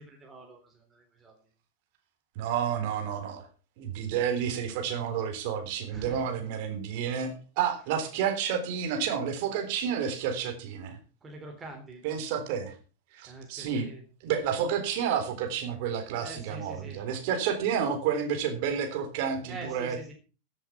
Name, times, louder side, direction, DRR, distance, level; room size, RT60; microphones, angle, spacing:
voice 1, 0.0-1.4 5.9-6.2 11.2-12.0 13.3-14.1 16.2-17.0 19.5-20.1, right 2 dB, 15° right, 1 dB, 3.7 m, -45 dB
voice 2, 2.4-3.5 3.8-11.0 12.0-12.7 13.1-13.9 14.2-20.1, right 8 dB, 45° right, 6 dB, 3.6 m, -30 dB
15.0 x 7.8 x 5.9 m, 0.36 s
figure-of-eight pair, 90°, 0 cm